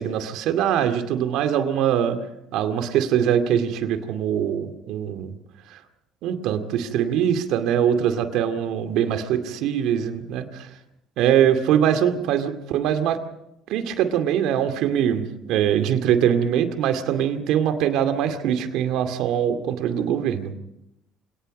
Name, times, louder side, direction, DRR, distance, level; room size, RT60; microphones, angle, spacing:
voice 1, 0.0-2.2 2.5-5.3 6.2-10.7 11.2-13.2 13.7-20.5, right 9 dB, 70° right, 8 dB, 2.3 m, -22 dB
27.5 x 18.5 x 5.4 m, 0.84 s
supercardioid pair, 75°, 0 cm